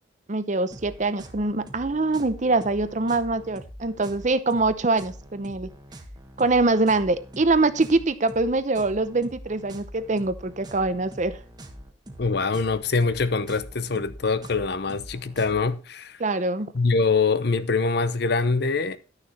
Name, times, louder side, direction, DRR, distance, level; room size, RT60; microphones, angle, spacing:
voice 1, 0.3-5.7 6.4-11.4 16.2-16.7, right 3 dB, 40° right, 0.8 m, -24 dB
sound 1, 0.7-15.7, equal, 20° right, 1.3 m, -44 dB
voice 2, 12.2-16.2 16.7-19.0, left 4 dB, 60° left, 0.7 m, -24 dB
11.5 x 6.6 x 4.2 m
head